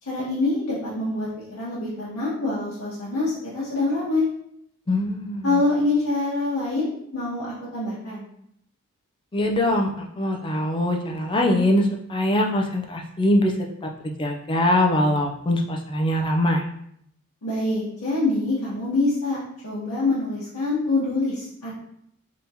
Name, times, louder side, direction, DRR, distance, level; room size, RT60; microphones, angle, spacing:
voice 1, 0.0-1.3 1.6-4.3 5.4-8.3 17.4-19.4 19.6-21.8, left 2 dB, 70° left, -9 dB, 0.9 m, -25 dB
voice 2, 4.9-5.6 9.3-13.5 14.2-16.6, left 1 dB, 20° left, 2 dB, 0.3 m, -22 dB
3.5 x 2.8 x 2.7 m, 0.72 s
head